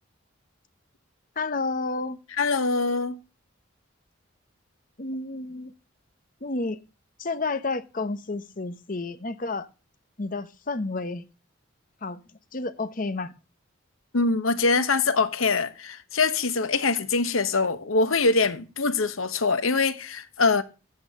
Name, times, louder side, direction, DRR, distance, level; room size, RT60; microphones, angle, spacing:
voice 1, 1.4-2.2 5.0-5.7 6.4-6.8 7.2-9.7 10.2-11.2 12.0-12.2 12.5-13.3, left 3 dB, 40° left, 0.8 m, -30 dB
voice 2, 2.4-3.2 14.1-20.6, left 4 dB, 85° left, 1.1 m, -23 dB
10.0 x 8.6 x 3.7 m
head